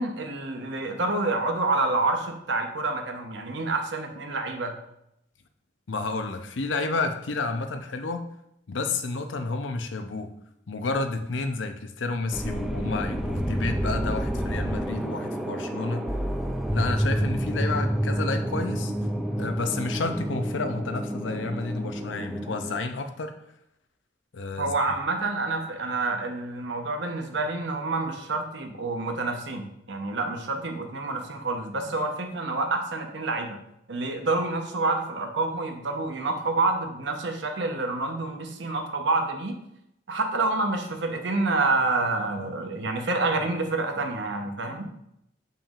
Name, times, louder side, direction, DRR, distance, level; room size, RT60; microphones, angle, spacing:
voice 1, 0.0-4.7 24.6-33.6 33.9-39.5 40.1-44.9, right 3 dB, 70° right, 4 dB, 0.9 m, -28 dB
voice 2, 5.9-8.3 8.7-10.3 10.7-16.0 16.7-18.9 19.4-23.3 24.3-24.7, left 3 dB, 85° left, 7 dB, 0.7 m, -30 dB
sound 1, 12.3-22.8, equal, ahead, 0.4 m, -29 dB
7.1 x 5.8 x 2.5 m, 0.79 s
head